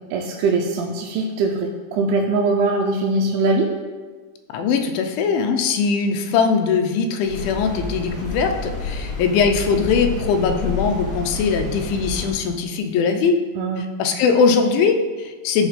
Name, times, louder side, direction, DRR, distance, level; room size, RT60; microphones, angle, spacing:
voice 1, 0.1-3.7 13.6-13.8, right 3 dB, 85° right, 0 dB, 2.6 m, -21 dB
voice 2, 4.5-13.4 14.0-15.7, left 5 dB, 80° left, 5 dB, 2.3 m, -20 dB
sound 1, 7.3-12.3, left 4 dB, 40° left, 3.3 m, -29 dB
12.0 x 4.3 x 4.1 m, 1.4 s
omnidirectional pair, 4.5 m